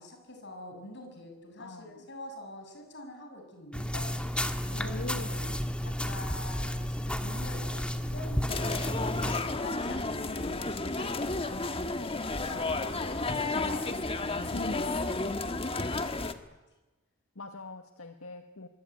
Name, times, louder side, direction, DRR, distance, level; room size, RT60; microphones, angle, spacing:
voice 1, 0.0-5.5 5.8-12.6 13.0-14.8 15.5-16.3, left 1 dB, 55° left, 4 dB, 7.7 m, -47 dB
voice 2, 1.6-2.1 4.7-5.6 12.4-13.3 14.5-15.1 17.3-18.7, left 3 dB, 80° left, 7 dB, 1.7 m, -42 dB
sound 1, 3.7-9.4, equal, 5° left, 1.7 m, -32 dB
sound 2, 8.5-16.3, left 3 dB, 25° left, 1.6 m, -32 dB
25.5 x 23.5 x 9.6 m, 1.1 s
head